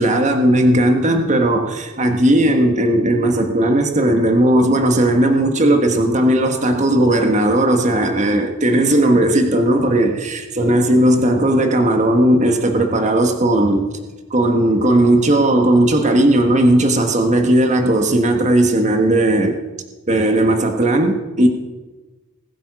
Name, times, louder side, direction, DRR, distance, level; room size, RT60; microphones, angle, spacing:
voice 1, 0.0-13.9 14.3-19.6 20.1-21.5, right 1 dB, 35° right, 5 dB, 1.4 m, -16 dB
20.0 x 8.9 x 6.1 m, 1.2 s
head